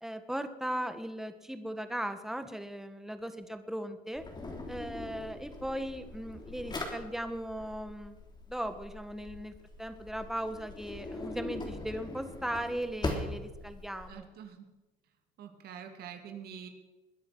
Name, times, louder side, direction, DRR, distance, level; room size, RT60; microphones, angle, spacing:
voice 1, 0.0-4.2 4.7-8.2 8.5-14.3, equal, ahead, 9 dB, 1.5 m, -38 dB
Drawer open or close, 4.2-14.1, left 2 dB, 25° left, 3.5 m, -41 dB
voice 2, 14.1-14.7 15.4-16.7, right 8 dB, 65° right, 5 dB, 2.7 m, -45 dB
21.5 x 10.5 x 6.2 m, 1.1 s
cardioid pair, 110°, 17 cm